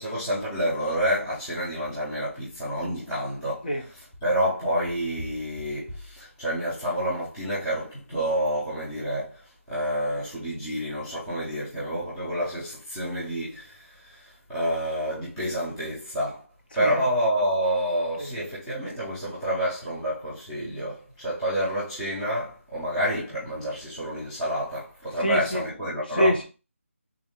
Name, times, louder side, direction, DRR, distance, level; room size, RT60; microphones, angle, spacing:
voice 1, 0.0-3.7 4.2-16.4 16.7-26.3, equal, 5° left, 0.7 m, -28 dB
voice 2, 16.7-17.1 18.2-18.3 25.2-25.6 26.1-26.4, left 1 dB, 40° left, 0.9 m, -26 dB
3.5 x 2.6 x 3.6 m
figure-of-eight pair, 175°, 7 cm